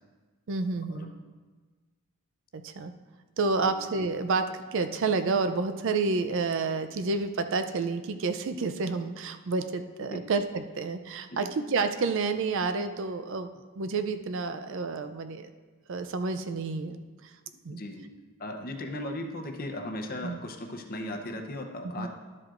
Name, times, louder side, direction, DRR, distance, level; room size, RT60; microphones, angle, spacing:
voice 1, 0.5-1.1 2.5-2.9 3.4-15.5 15.9-17.4 17.6-17.8 20.2-20.4 22.0-22.1, right 4 dB, 55° right, 9 dB, 0.4 m, -29 dB
voice 2, 17.7-18.1 18.4-22.1, left 1 dB, 40° left, 3 dB, 0.8 m, -37 dB
12.0 x 7.5 x 2.5 m, 1.3 s
head